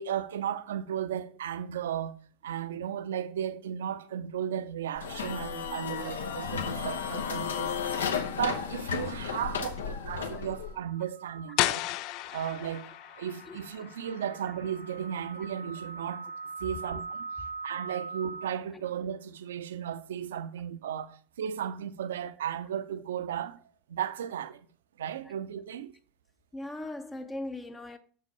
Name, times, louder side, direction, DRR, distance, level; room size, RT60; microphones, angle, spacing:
voice 1, 0.0-2.2 2.4-7.7 8.3-11.8 12.3-12.9 13.2-16.3 16.6-17.2 17.6-23.6 23.9-24.6 25.0-25.9, right 9 dB, 65° right, 0.6 m, -35 dB
sound 1, 5.0-10.8, left 6 dB, 70° left, 1.0 m, -33 dB
sound 2, 6.2-6.6 10.3-18.5, right 4 dB, 85° right, 1.3 m, -43 dB
sound 3, 11.6-17.2, left 16 dB, 50° left, 0.3 m, -36 dB
voice 2, 26.5-28.0, left 2 dB, 15° left, 0.7 m, -40 dB
6.6 x 5.5 x 5.3 m
figure-of-eight pair, 80°, 0 cm